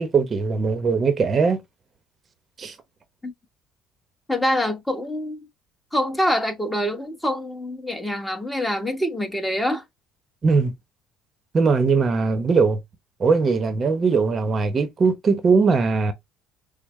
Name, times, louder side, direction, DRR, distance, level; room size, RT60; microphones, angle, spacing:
voice 1, 0.0-1.6 2.6-2.7 10.4-10.7 11.5-12.8 13.2-16.1, right 4 dB, 35° right, 0.8 m, -20 dB
voice 2, 4.3-5.4 5.9-9.8, equal, 10° left, 1.2 m, -25 dB
6.1 x 2.1 x 3.1 m
supercardioid pair, 75°, 0 cm